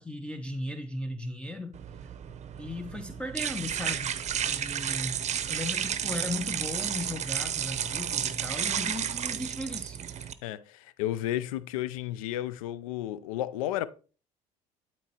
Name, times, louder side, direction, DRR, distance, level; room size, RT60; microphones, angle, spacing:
voice 1, 0.0-1.8 2.6-4.2 4.5-10.0, left 1 dB, 5° left, 0.9 m, -37 dB
sound 1, 1.7-10.3, right 9 dB, 40° right, 0.8 m, -32 dB
voice 2, 10.4-13.9, left 13 dB, 80° left, 0.5 m, -33 dB
12.0 x 4.3 x 2.9 m
hypercardioid pair, 65°, 18 cm